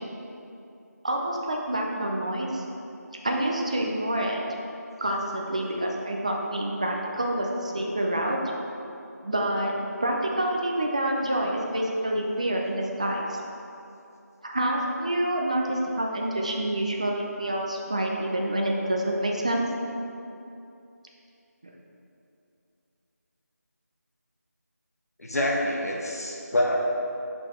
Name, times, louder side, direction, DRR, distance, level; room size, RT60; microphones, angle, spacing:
voice 1, 1.0-2.6 3.2-4.4 5.0-8.4 9.2-9.7 10.0-13.4 14.4-19.7, right 1 dB, 25° right, 0 dB, 0.5 m, -27 dB
voice 2, 25.2-26.9, left 1 dB, 60° left, -1 dB, 1.2 m, -26 dB
6.2 x 4.9 x 4.3 m, 2.7 s
figure-of-eight pair, 175°, 9 cm